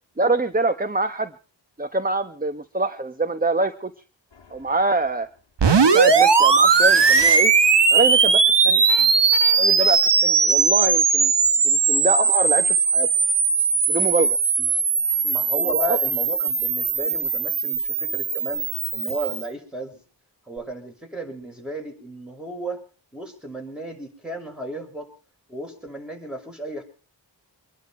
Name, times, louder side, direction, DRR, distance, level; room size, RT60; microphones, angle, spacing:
voice 1, 0.2-1.3 1.8-3.9 4.5-5.3 5.8-7.5 7.9-8.8 9.6-11.3 11.6-13.1 13.9-14.4 15.7-16.0, right 2 dB, 20° right, 9 dB, 1.1 m, -25 dB
sound 1, 4.3-4.9 6.6-7.5 8.9-9.9, left 5 dB, 70° left, 1.4 m, -35 dB
sound 2, 5.6-19.4, right 5 dB, 65° right, 1.3 m, -19 dB
voice 2, 15.2-18.6 18.9-20.0 20.5-22.8 23.1-25.1 25.5-26.8, right 1 dB, ahead, 2 dB, 6.3 m, -34 dB
25.5 x 11.0 x 4.5 m, 0.36 s
wide cardioid pair, 55°, 45 cm